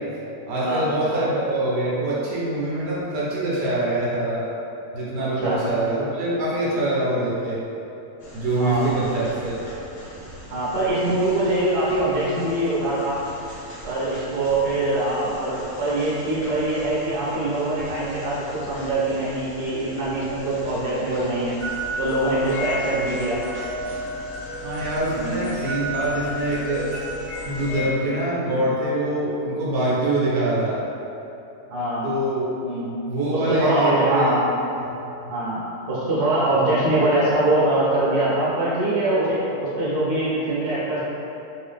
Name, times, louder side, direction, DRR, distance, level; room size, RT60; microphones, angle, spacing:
voice 1, 0.5-4.4 4.9-7.6 8.3-9.5 24.6-26.9 27.4-30.8 32.0-32.5 33.0-34.3 34.8-35.1, right 1 dB, 80° right, -7 dB, 1.4 m, -24 dB
voice 2, 5.2-5.6 8.6-8.9 10.5-13.2 13.8-21.6 22.0-23.4 25.1-25.4 25.7-25.8 31.7-32.1 32.6-32.9 33.3-34.5 35.3-41.0, right 1 dB, 45° right, -9 dB, 1.1 m, -23 dB
sound 1, 8.2-27.7, equal, 45° left, 0.8 m, -42 dB
sound 2, 21.6-27.9, equal, 65° left, 0.4 m, -32 dB
3.2 x 2.7 x 3.3 m, 2.8 s
omnidirectional pair, 1.8 m